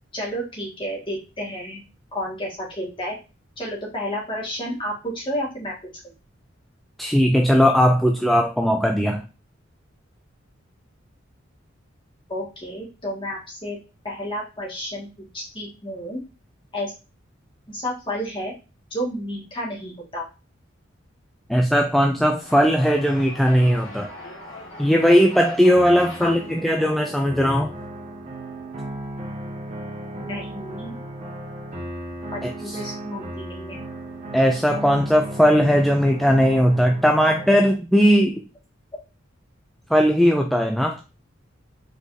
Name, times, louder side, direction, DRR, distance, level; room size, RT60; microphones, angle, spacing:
voice 1, 0.1-1.8 2.1-3.1 3.6-5.7 12.3-13.8 14.0-15.1 15.3-16.2 16.7-16.9 17.7-18.5 18.9-20.3 26.2-26.3 30.2-31.0 32.3-33.8, equal, 25° left, -4 dB, 1.8 m, -31 dB
voice 2, 7.0-9.2 21.5-24.1 24.8-27.7 32.4-32.8 34.3-38.4 39.9-41.0, equal, ahead, 2 dB, 0.3 m, -18 dB
sound 1, 22.4-27.9, left 1 dB, 85° left, 1.9 m, -41 dB
sound 2, 25.7-37.7, right 1 dB, 35° right, 1.2 m, -35 dB
5.0 x 4.0 x 2.6 m, 0.31 s
head